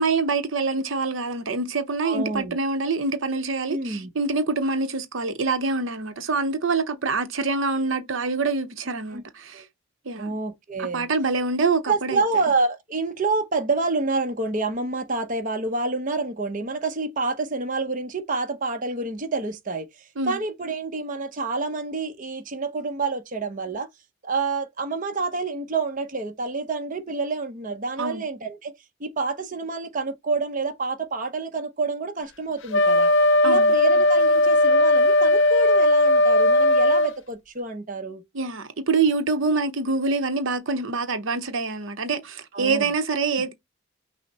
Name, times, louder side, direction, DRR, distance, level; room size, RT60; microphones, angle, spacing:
voice 1, 0.0-9.6 10.0-10.4 10.8-12.2 20.2-20.4 28.0-28.2 33.4-33.7 38.3-43.5, right 4 dB, 70° right, 0.8 m, -25 dB
voice 2, 2.0-2.6 3.7-4.1 9.1-9.2 9.5-9.6 10.2-11.1 11.9-23.9 24.2-33.1 33.4-38.2 42.5-42.9, right 3 dB, 40° right, 0.8 m, -28 dB
Wind instrument woodwind instrument, 32.7-37.2, left 1 dB, 60° left, 0.6 m, -17 dB
6.2 x 2.1 x 4.1 m
head